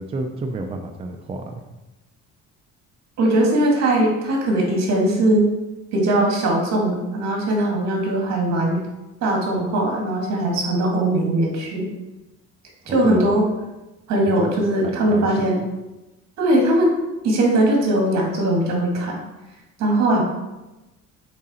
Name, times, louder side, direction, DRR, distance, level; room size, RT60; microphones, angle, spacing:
voice 1, 0.0-1.6 12.8-13.3 14.2-14.5 14.8-15.5, right 2 dB, 20° right, 3 dB, 0.4 m, -30 dB
voice 2, 3.2-5.5 5.9-8.8 9.2-11.9 12.9-13.5 14.1-15.6 16.4-17.0 17.2-19.2 19.8-20.2, right 1 dB, 65° right, 0 dB, 2.1 m, -20 dB
7.8 x 3.8 x 4.3 m, 1.0 s
cardioid pair, 160°, 30 cm